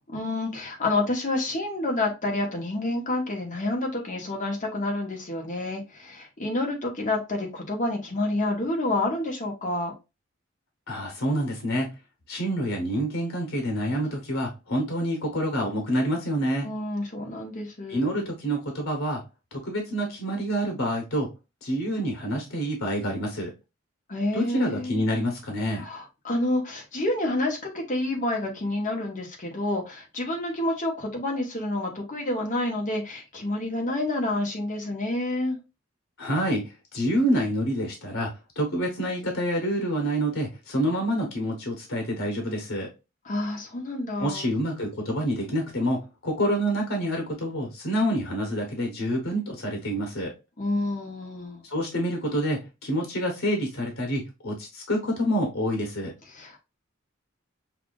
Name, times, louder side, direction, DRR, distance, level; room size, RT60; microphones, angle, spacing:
voice 1, 0.1-9.9 16.6-18.2 24.1-25.1 25.7-35.6 43.2-44.5 50.6-51.6 56.3-56.6, left 2 dB, 40° left, 1.2 m, -29 dB
voice 2, 10.9-11.9 12.3-16.7 17.9-19.2 19.5-21.3 21.6-23.5 24.3-25.8 36.2-36.6 36.9-38.3 38.6-42.9 44.2-50.3 51.6-56.1, equal, 85° left, 1.1 m, -27 dB
5.8 x 2.5 x 2.4 m
head